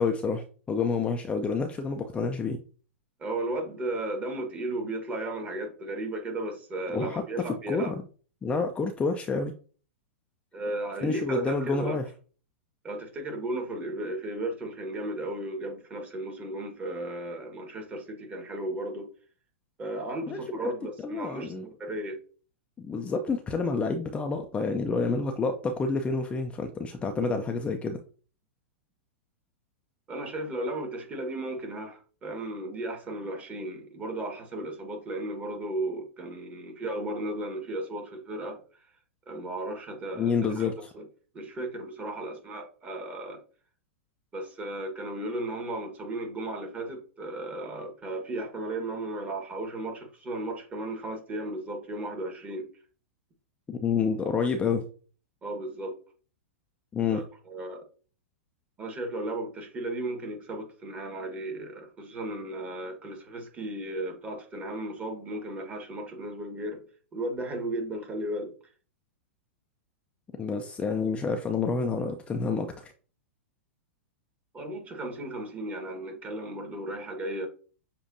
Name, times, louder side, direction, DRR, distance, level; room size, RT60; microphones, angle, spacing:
voice 1, 0.0-2.6 6.9-8.0 8.4-9.5 11.0-12.0 20.3-20.6 21.0-21.6 22.8-28.0 40.1-40.9 53.7-54.8 56.9-57.2 70.4-72.9, left 4 dB, 15° left, 0.5 m, -28 dB
voice 2, 3.2-7.9 10.5-12.0 12.8-19.1 19.8-21.5 21.8-22.2 30.1-38.6 39.3-41.0 41.3-43.4 44.3-52.7 55.4-55.9 57.1-57.8 58.8-66.8 67.1-68.5 74.5-77.5, right 1 dB, 20° right, 1.5 m, -35 dB
6.9 x 2.6 x 2.6 m
hypercardioid pair, 110°, 7 cm